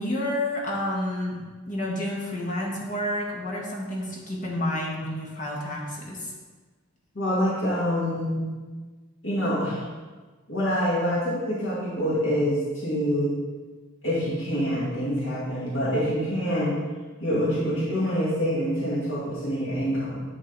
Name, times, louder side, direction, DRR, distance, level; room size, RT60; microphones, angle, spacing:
voice 1, 0.0-6.3, left 1 dB, 35° left, -2 dB, 1.4 m, -30 dB
voice 2, 7.2-8.5 9.2-9.8 10.5-13.4 14.0-16.8 17.2-20.2, equal, 55° left, -9 dB, 1.9 m, -26 dB
10.0 x 4.0 x 3.9 m, 1.4 s
head